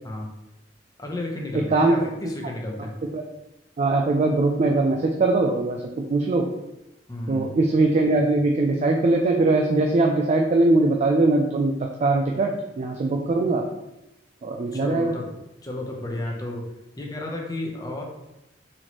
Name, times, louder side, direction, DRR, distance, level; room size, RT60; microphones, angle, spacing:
voice 1, 1.0-2.9 7.1-7.5 14.7-15.3 15.6-16.7 17.0-18.0, left 1 dB, 20° left, 0 dB, 0.7 m, -32 dB
voice 2, 1.5-2.0 3.0-3.2 3.8-6.5 7.3-13.7 14.4-15.2, right 2 dB, 40° right, 2 dB, 0.3 m, -21 dB
4.1 x 3.0 x 2.9 m, 0.90 s
head